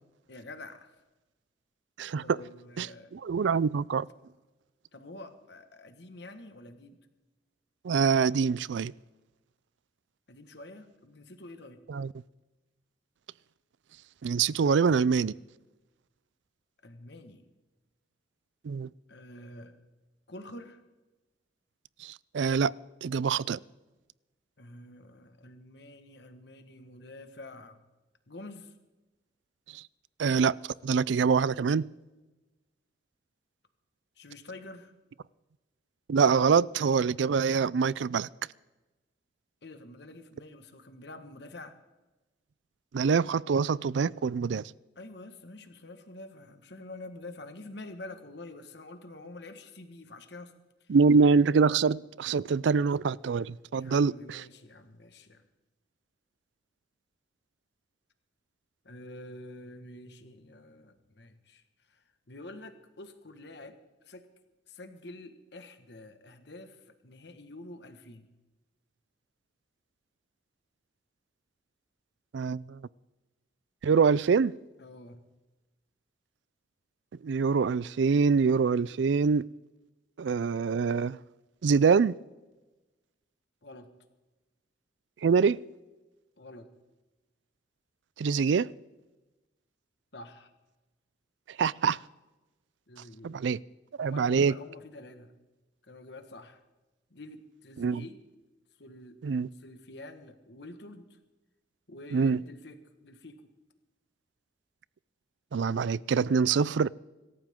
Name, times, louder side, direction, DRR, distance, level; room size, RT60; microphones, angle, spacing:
voice 1, 0.3-1.0 2.2-3.1 4.9-7.0 10.3-11.8 16.8-17.5 19.1-19.8 20.3-20.8 24.6-27.8 28.3-28.8 34.1-34.9 39.6-41.8 44.9-50.5 50.8-51.0 53.7-55.5 58.8-63.8 64.0-64.3 64.7-68.3 74.8-75.3 83.6-83.9 86.4-86.7 90.1-90.5 92.9-93.4 94.0-95.3 95.8-96.6 97.1-98.2 98.8-99.2 99.5-101.2 101.9-103.5 106.3-106.6, left 2 dB, 60° left, 1.5 m, -47 dB
voice 2, 2.0-2.4 2.8-2.9 3.1-4.1 7.8-8.9 11.9-12.1 14.2-15.3 18.6-18.9 22.0-22.7 23.0-23.6 29.7-29.8 30.2-30.6 30.8-31.9 36.1-38.3 42.9-44.6 50.9-54.4 72.3-72.8 73.8-74.5 77.2-79.4 80.2-81.2 81.6-82.1 85.2-85.6 88.2-88.7 91.6-92.0 93.2-93.6 94.0-94.5 97.8-98.0 99.2-99.5 102.1-102.4 105.5-106.9, right 5 dB, 75° right, 0.4 m, -25 dB
25.5 x 14.0 x 3.7 m
head